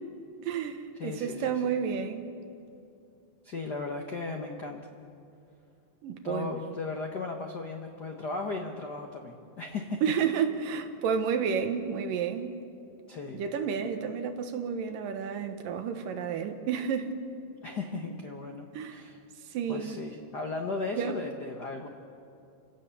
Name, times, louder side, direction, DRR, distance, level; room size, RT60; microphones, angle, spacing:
voice 1, 0.4-2.3 6.0-6.6 10.0-12.6 13.3-17.2 18.7-19.0 19.5-20.0 21.0-21.1, right 7 dB, 75° right, 7 dB, 2.8 m, -31 dB
voice 2, 1.0-1.7 3.4-4.8 6.2-10.0 13.1-13.4 17.6-19.2 19.7-21.9, left 3 dB, 65° left, 3 dB, 1.0 m, -36 dB
29.5 x 17.5 x 7.1 m, 2.6 s
omnidirectional pair, 4.0 m